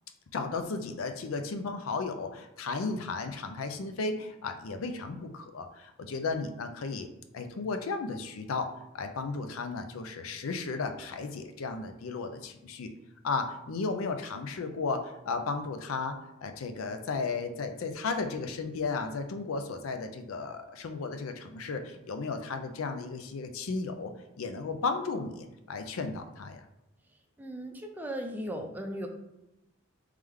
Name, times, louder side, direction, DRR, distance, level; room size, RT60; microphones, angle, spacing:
voice 1, 0.3-7.1 7.3-12.9 13.2-26.6, left 4 dB, 85° left, 7 dB, 0.5 m, -34 dB
voice 2, 27.4-29.1, equal, 10° right, 2 dB, 0.4 m, -37 dB
3.3 x 3.2 x 3.6 m, 0.91 s
head